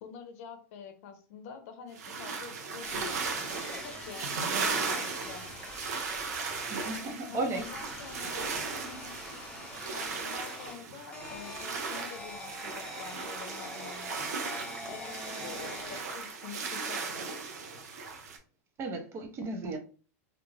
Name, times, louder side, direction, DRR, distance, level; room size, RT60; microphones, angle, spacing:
voice 1, 0.0-3.2 3.7-5.5 7.3-9.5 9.9-14.3 14.9-17.3, left 6 dB, 65° left, 0.6 m, -47 dB
sound 1, 2.0-18.4, right 5 dB, 85° right, 0.6 m, -37 dB
sound 2, 2.8-7.1 7.5-10.8 11.1-16.3, left 2 dB, 15° left, 0.8 m, -44 dB
voice 2, 6.7-7.6 18.8-19.8, right 2 dB, 30° right, 0.6 m, -34 dB
2.4 x 2.2 x 3.1 m
supercardioid pair, 125°, 9 cm